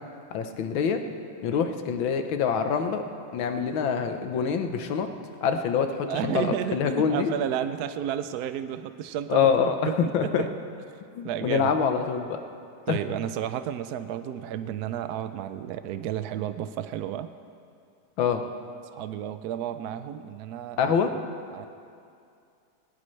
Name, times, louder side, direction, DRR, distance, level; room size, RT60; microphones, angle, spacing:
voice 1, 0.3-1.0 1.4-3.0 3.3-5.1 5.4-7.3 9.3-9.7 10.1-10.4 11.1-12.4 12.9-13.0 18.2-18.4 20.8-21.1, left 7 dB, 85° left, 6 dB, 1.7 m, -25 dB
voice 2, 6.1-9.5 9.8-10.5 11.2-11.7 12.9-17.3 18.8-20.9 21.5-21.7, right 10 dB, 75° right, 10 dB, 0.9 m, -32 dB
19.5 x 18.5 x 3.2 m, 2.4 s
omnidirectional pair, 2.1 m